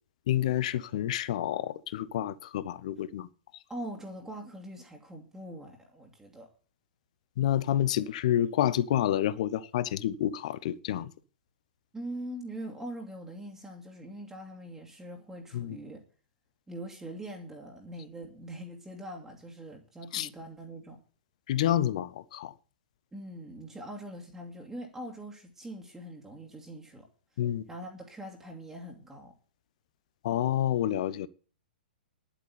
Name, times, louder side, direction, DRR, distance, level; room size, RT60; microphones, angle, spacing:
voice 1, 0.3-3.3 7.4-11.1 15.5-15.8 20.1-20.3 21.5-22.5 27.4-27.7 30.2-31.3, left 11 dB, 45° left, 0.8 m, -28 dB
voice 2, 3.7-6.5 11.9-16.0 16.7-21.0 23.1-27.1 27.3-27.4 27.7-29.3, right 1 dB, 5° right, 2.2 m, -42 dB
10.5 x 8.3 x 8.6 m
figure-of-eight pair, 110°, 5 cm